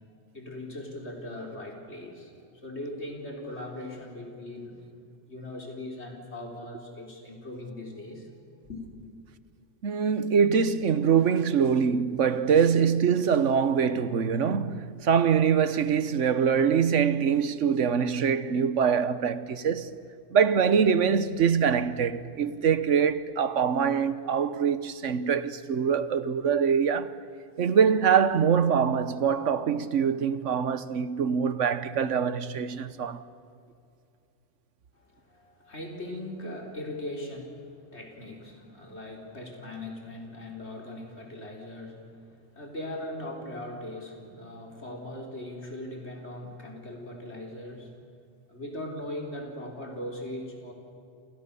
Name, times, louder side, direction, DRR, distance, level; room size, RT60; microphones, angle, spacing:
voice 1, 0.3-4.8 5.3-8.3 8.7-8.9 34.9-48.0 48.5-50.7, left 1 dB, 65° left, 4.5 m, -39 dB
voice 2, 9.8-19.9 20.3-27.1 27.6-33.2, right 7 dB, 80° right, 1.3 m, -24 dB
29.0 x 28.0 x 6.9 m
omnidirectional pair, 1.2 m